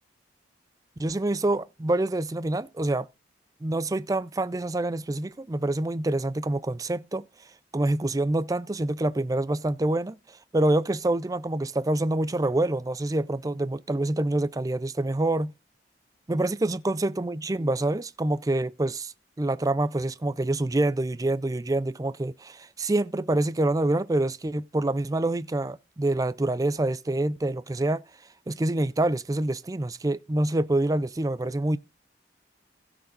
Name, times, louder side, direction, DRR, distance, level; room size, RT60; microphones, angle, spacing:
voice 1, 1.0-3.1 3.6-7.3 7.7-15.5 16.3-28.0 28.5-31.8, right 2 dB, 20° right, 0.4 m, -26 dB
15.5 x 6.0 x 3.9 m
head